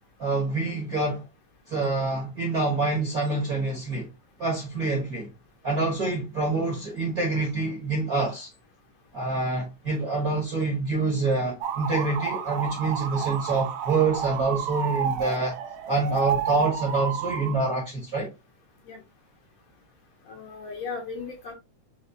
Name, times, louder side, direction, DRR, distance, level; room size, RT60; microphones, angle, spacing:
voice 1, 0.2-1.2 1.7-4.1 4.4-5.3 5.6-8.5 9.1-15.6 15.9-18.3, right 3 dB, 50° right, 1.1 m, -26 dB
sound 1, 11.6-17.6, right 8 dB, 75° right, 1.9 m, -30 dB
voice 2, 20.3-21.5, left 5 dB, 70° left, 1.7 m, -36 dB
5.8 x 2.9 x 2.7 m
omnidirectional pair, 3.5 m